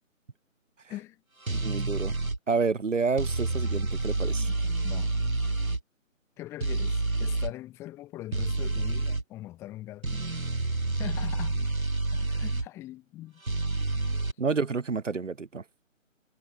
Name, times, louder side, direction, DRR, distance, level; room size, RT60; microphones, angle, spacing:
voice 1, 0.9-1.2 4.2-5.2 6.4-10.4 11.0-11.7 12.1-13.4 14.1-14.3, left 15 dB, 5° left, 2.1 m, -42 dB
voice 2, 1.5-2.2 2.5-4.5 14.4-15.6, right 4 dB, 65° right, 1.1 m, -29 dB
sound 1, 1.5-2.4 3.2-5.8 6.6-7.5 8.3-9.2 10.0-12.7 13.5-14.3, right 2 dB, 85° right, 1.9 m, -28 dB
figure-of-eight pair, 150°, 40 cm